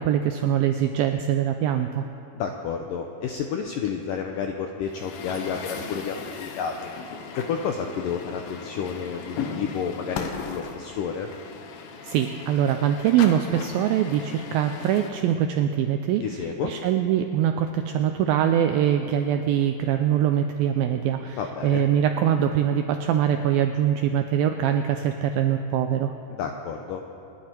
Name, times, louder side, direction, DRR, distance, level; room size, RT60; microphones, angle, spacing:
voice 1, 0.0-2.0 12.0-16.2 16.6-26.1, right 10 dB, 85° right, 7 dB, 2.1 m, -23 dB
voice 2, 2.3-7.0 7.4-11.3 16.2-16.7 21.3-21.8 26.3-27.0, left 7 dB, 85° left, 3 dB, 1.9 m, -30 dB
Truck, 4.9-15.1, left 6 dB, 70° left, 2.5 m, -37 dB
28.0 x 11.0 x 4.5 m, 2.9 s
omnidirectional pair, 4.8 m